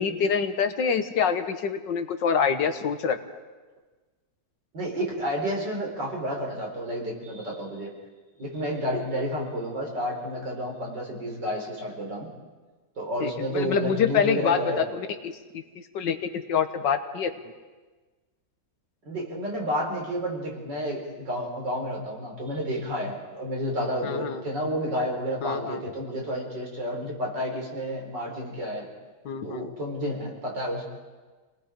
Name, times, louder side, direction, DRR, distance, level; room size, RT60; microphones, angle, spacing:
voice 1, 0.0-3.2 13.2-15.6 15.9-17.3 24.0-24.4 25.4-25.8 29.3-29.7, left 7 dB, 85° left, 8 dB, 1.9 m, -26 dB
voice 2, 4.7-7.9 8.4-12.3 13.0-14.9 19.1-28.9 29.4-30.8, equal, 75° right, -1 dB, 5.2 m, -30 dB
28.5 x 19.5 x 5.2 m, 1.3 s
omnidirectional pair, 1.9 m